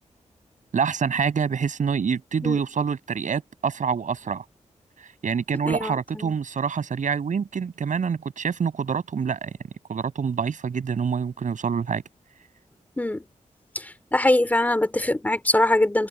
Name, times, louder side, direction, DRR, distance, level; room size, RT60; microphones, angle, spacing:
voice 1, 0.7-4.4 5.2-9.5 9.9-12.0, right 6 dB, 75° right, 6.0 m, -26 dB
voice 2, 5.6-6.4 13.0-13.2 13.7-16.1, left 1 dB, 10° left, 3.3 m, -23 dB
wide cardioid pair, 170°, 13 cm